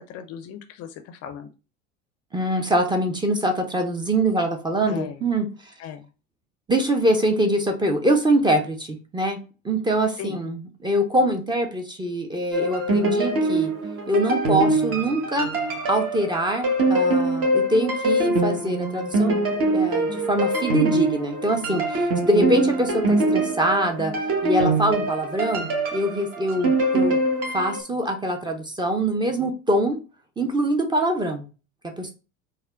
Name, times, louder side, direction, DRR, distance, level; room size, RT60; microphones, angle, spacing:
voice 1, 0.0-1.5 4.9-5.2 5.8-6.0 10.2-10.4 26.5-26.8, left 8 dB, 40° left, 8 dB, 0.5 m, -37 dB
voice 2, 2.3-5.5 6.7-9.4 9.6-13.7 14.1-15.5 15.9-19.4 19.7-24.1 24.4-27.2 27.5-30.0 30.4-31.5 32.0-32.1, right 1 dB, 10° right, 5 dB, 0.6 m, -24 dB
sound 1, 12.5-27.8, right 2 dB, 40° right, 1.1 m, -23 dB
4.2 x 2.2 x 2.4 m, 0.32 s
hypercardioid pair, 70°, 38 cm